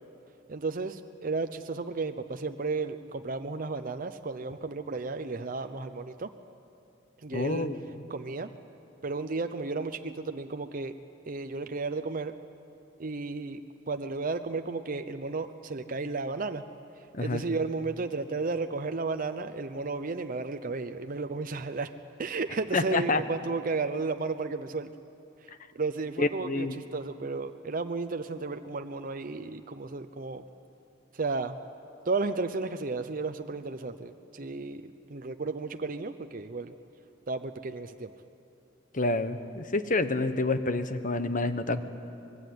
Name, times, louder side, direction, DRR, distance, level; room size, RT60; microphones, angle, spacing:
voice 1, 0.5-6.3 7.2-7.7 8.1-8.5 9.0-10.9 11.3-12.4 13.0-13.6 13.9-16.6 16.9-21.9 22.2-24.9 25.4-25.5 25.7-30.4 31.1-31.6 32.0-36.7 37.3-38.1, right 3 dB, 45° right, 7 dB, 0.7 m, -33 dB
voice 2, 7.3-7.7 17.1-17.4 22.7-23.2 26.2-26.8 38.9-41.8, left 2 dB, 45° left, 10 dB, 1.2 m, -28 dB
25.0 x 21.5 x 9.5 m, 2.6 s
head